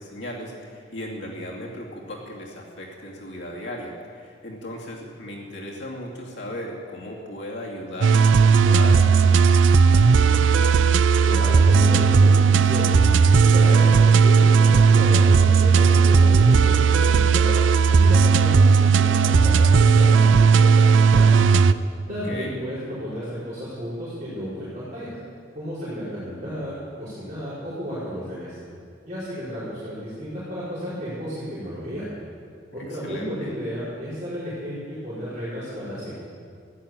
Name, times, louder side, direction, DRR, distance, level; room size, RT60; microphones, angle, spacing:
voice 1, 0.0-10.7 22.1-22.6 32.8-33.5, left 1 dB, 70° left, -2 dB, 2.6 m, -37 dB
sound 1, 8.0-21.7, right 5 dB, 80° right, 0.4 m, -16 dB
voice 2, 11.2-12.9 13.2-17.6 17.9-21.5 22.1-25.1 25.5-28.6 29.1-32.1 32.7-36.1, equal, 40° right, -13 dB, 5.2 m, -32 dB
15.0 x 11.0 x 7.6 m, 2.3 s
head